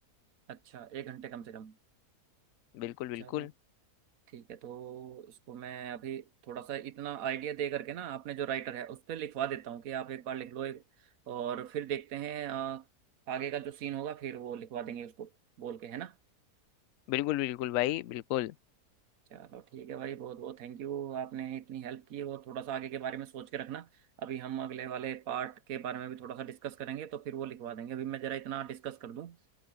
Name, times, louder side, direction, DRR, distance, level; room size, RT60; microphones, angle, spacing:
voice 1, 0.5-1.7 3.2-3.5 4.3-10.8 11.3-12.8 13.3-15.3 15.6-16.1 19.3-23.9 24.2-29.4, right 10 dB, 65° right, 1.2 m, -38 dB
voice 2, 2.7-3.5 17.1-18.5, left 15 dB, 70° left, 0.9 m, -32 dB
omnidirectional pair, 1.7 m